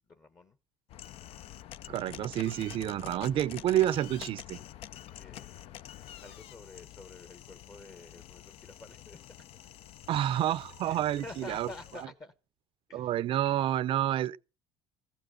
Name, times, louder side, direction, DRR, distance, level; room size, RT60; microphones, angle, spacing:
voice 1, 0.1-0.6 5.1-9.5 10.8-12.3 12.9-13.2, left 3 dB, 30° left, 1.0 m, -49 dB
sound 1, 0.9-12.0, left 12 dB, 60° left, 0.5 m, -48 dB
voice 2, 1.9-4.6 10.1-11.7 12.9-14.4, right 12 dB, 50° right, 0.6 m, -29 dB
15.0 x 5.9 x 6.8 m
cardioid pair, 110°, 11 cm